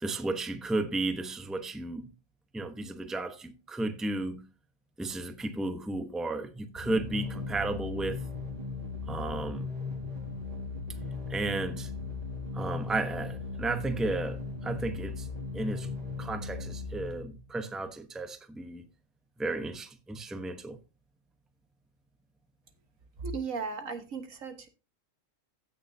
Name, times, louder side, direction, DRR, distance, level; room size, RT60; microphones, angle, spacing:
voice 1, 0.0-2.1 2.5-4.4 5.0-8.2 9.1-9.7 11.3-11.9 12.5-15.3 15.5-15.9 16.2-18.9 19.4-20.8, right 2 dB, ahead, 0.8 m, -33 dB
sound 1, 6.7-17.5, left 4 dB, 30° right, 2.0 m, -37 dB
voice 2, 23.2-24.7, right 4 dB, 85° right, 1.8 m, -36 dB
16.0 x 6.5 x 2.7 m
omnidirectional pair, 1.4 m